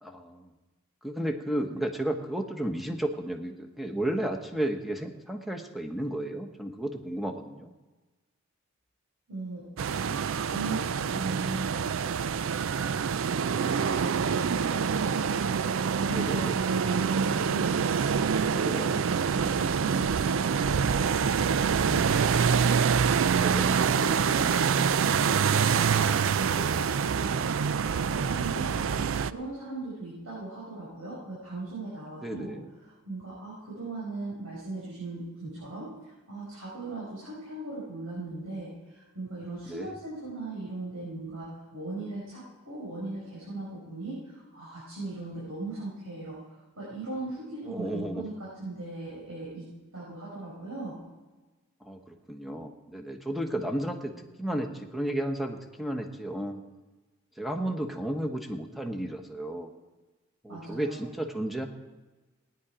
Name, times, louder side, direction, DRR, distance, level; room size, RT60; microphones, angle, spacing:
voice 1, 0.0-0.5 1.0-7.7 15.3-15.4 16.1-16.6 18.6-19.0 23.4-23.8 32.2-32.7 39.6-40.0 47.7-48.2 51.8-56.6 57.4-59.7 60.4-61.7, right 1 dB, ahead, 4 dB, 1.1 m, -33 dB
voice 2, 9.3-9.7 10.4-10.8 11.1-12.0 13.5-15.5 16.0-17.8 18.2-19.0 19.3-22.6 23.8-27.7 28.0-32.5 33.0-49.7 49.9-51.0 60.5-61.0, right 2 dB, 90° right, -7 dB, 5.4 m, -39 dB
sound 1, 9.8-29.3, right 6 dB, 65° right, 0.4 m, -26 dB
18.5 x 10.0 x 5.0 m, 1.2 s
head